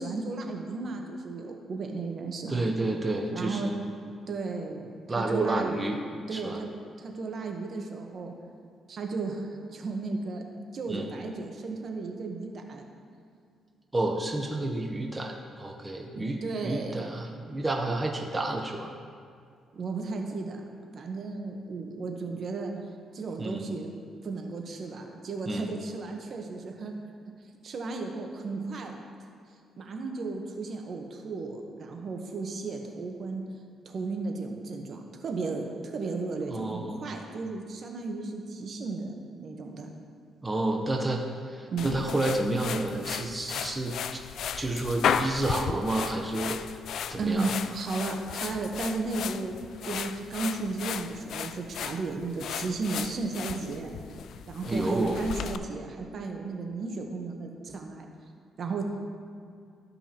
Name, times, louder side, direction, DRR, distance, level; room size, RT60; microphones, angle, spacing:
voice 1, 0.0-2.7 3.3-3.7 4.3-5.8 6.3-6.7 7.0-8.3 8.9-10.4 10.7-12.8 16.1-17.0 19.7-20.6 20.9-22.7 23.1-23.9 24.2-26.9 27.6-29.0 29.8-33.4 33.8-39.9 41.7-42.1 47.2-49.5 49.8-53.9 54.5-58.1 58.6-58.8, right 3 dB, 55° right, 3 dB, 1.0 m, -34 dB
voice 2, 2.5-3.8 5.1-6.0 6.3-6.6 10.9-11.1 13.9-18.9 23.4-23.6 25.5-25.7 36.5-37.0 40.4-44.2 44.6-46.6 47.1-47.5 54.6-55.2, right 2 dB, 20° right, 1 dB, 0.7 m, -30 dB
sound 1, 41.8-55.6, left 8 dB, 70° left, 0.3 m, -35 dB
14.0 x 5.4 x 2.9 m, 2.3 s
cardioid pair, 90°, 0 cm